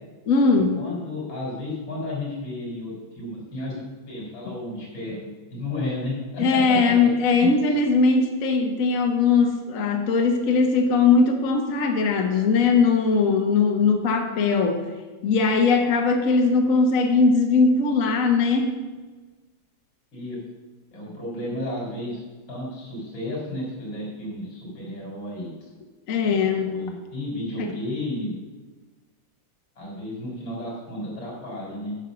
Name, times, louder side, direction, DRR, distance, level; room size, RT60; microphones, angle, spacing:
voice 1, 0.3-0.8 4.5-4.6 6.4-14.8 15.2-18.7 26.1-26.7, left 4 dB, 50° left, 3 dB, 1.2 m, -20 dB
voice 2, 0.8-6.9 7.3-7.5 20.1-20.4 20.9-22.2 22.5-25.5 26.2-26.3 26.7-28.4 29.8-32.0, left 1 dB, 85° left, -3 dB, 4.6 m, -32 dB
8.8 x 6.4 x 6.7 m, 1.3 s
omnidirectional pair, 2.1 m